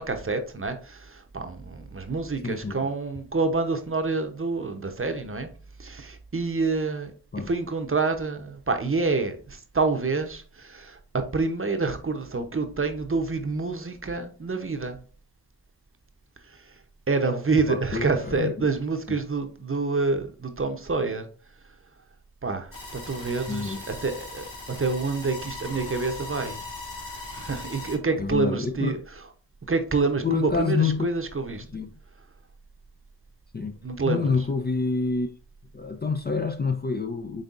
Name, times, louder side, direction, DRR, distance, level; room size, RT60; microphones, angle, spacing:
voice 1, 0.0-5.5 5.8-7.1 7.5-15.0 16.5-16.6 17.1-21.3 22.4-24.5 24.8-26.6 27.3-29.0 29.7-31.6 33.8-34.3, right 3 dB, 35° right, 0.8 m, -27 dB
voice 2, 2.4-2.8 7.3-7.5 17.6-18.7 19.1-19.2 23.5-23.8 28.2-29.0 30.2-31.1 31.7-31.9 33.5-33.8 34.0-35.3 35.7-37.4, left 4 dB, 25° left, 0.4 m, -27 dB
sound 1, 22.7-28.0, left 2 dB, 60° left, 2.4 m, -39 dB
5.4 x 3.5 x 2.5 m
cardioid pair, 45°, 37 cm